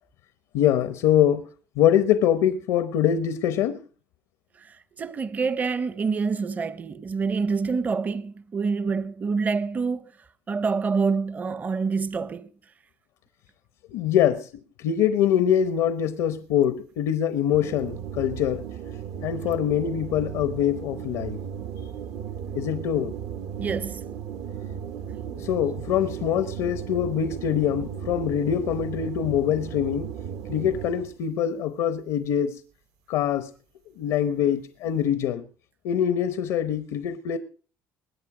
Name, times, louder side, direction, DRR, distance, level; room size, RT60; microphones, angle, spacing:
voice 1, 0.5-1.5 1.8-3.8 13.9-14.5 14.8-18.6 19.2-21.4 22.5-23.1 25.3-30.1 30.5-32.5 33.1-33.5 34.0-35.4 35.8-37.4, left 10 dB, 90° left, 0.9 m, -24 dB
voice 2, 4.6-10.1 10.5-12.5 23.6-24.0, right 5 dB, 30° right, 0.6 m, -27 dB
sound 1, 17.5-31.2, right 8 dB, 75° right, 0.9 m, -35 dB
21.0 x 8.3 x 4.9 m
cardioid pair, 110°, 6 cm